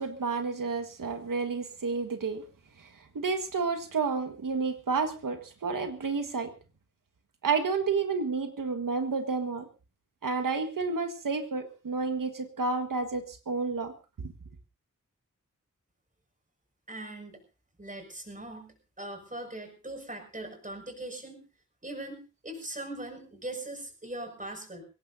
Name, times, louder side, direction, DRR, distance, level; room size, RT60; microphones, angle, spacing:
voice 1, 0.0-2.4 2.8-2.9 3.1-6.5 7.4-9.7 10.2-14.3, right 4 dB, 80° right, 6 dB, 1.7 m, -30 dB
voice 2, 16.9-17.4 17.8-18.7 19.0-21.4 21.8-24.8, right 1 dB, 25° right, 3 dB, 6.0 m, -40 dB
23.5 x 17.5 x 2.7 m, 0.32 s
wide cardioid pair, 100°, 32 cm